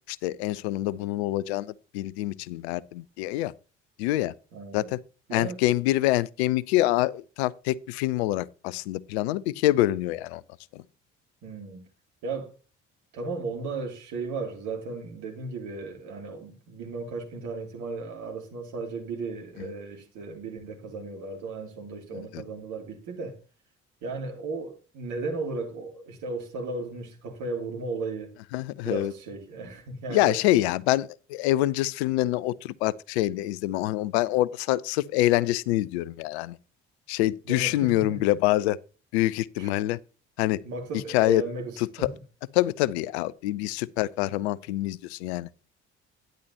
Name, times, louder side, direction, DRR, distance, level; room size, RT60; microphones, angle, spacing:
voice 1, 0.1-3.5 4.0-4.3 4.7-5.0 5.3-10.4 10.7-10.8 22.1-22.4 28.5-29.1 30.1-36.6 37.1-38.8 39.1-40.0 40.4-40.6 40.9-41.4 41.8-42.1 42.5-45.5, left 16 dB, 70° left, 0.6 m, -26 dB
voice 2, 4.5-4.9 5.3-5.6 11.4-11.8 12.2-12.6 13.1-23.4 24.0-28.4 28.8-30.4 37.5-38.2 39.6-39.7 40.6-42.2, right 3 dB, 60° right, 2.9 m, -35 dB
12.0 x 10.5 x 2.9 m
figure-of-eight pair, 45°, 34 cm